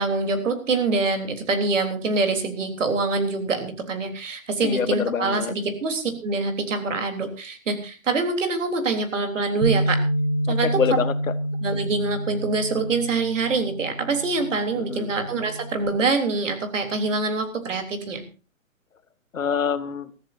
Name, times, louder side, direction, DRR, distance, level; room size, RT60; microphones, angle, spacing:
voice 1, 0.0-10.0 10.5-10.7 11.6-18.2, right 3 dB, 65° right, 6 dB, 3.6 m, -25 dB
voice 2, 4.6-5.5 10.4-11.3 14.8-15.1 19.3-20.1, left 7 dB, 75° left, 13 dB, 1.5 m, -26 dB
Bass guitar, 9.6-15.9, right 1 dB, 85° right, 4.5 m, -28 dB
21.0 x 14.0 x 2.7 m, 0.34 s
hypercardioid pair, 140°, 40 cm